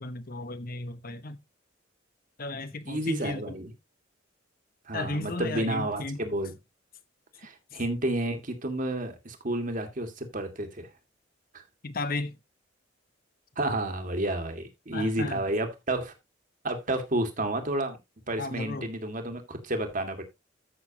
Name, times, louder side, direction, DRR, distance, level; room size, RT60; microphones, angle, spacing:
voice 1, 0.0-1.4 2.4-3.6 4.9-6.2 7.7-7.8 11.8-12.4 14.9-15.4 18.4-18.9, left 2 dB, 45° left, 1.0 m, -35 dB
voice 2, 2.9-3.7 4.9-6.5 7.4-10.9 11.5-11.6 13.6-16.1 16.6-18.0 18.3-20.2, right 1 dB, 40° right, 2.0 m, -31 dB
14.0 x 6.2 x 2.9 m
head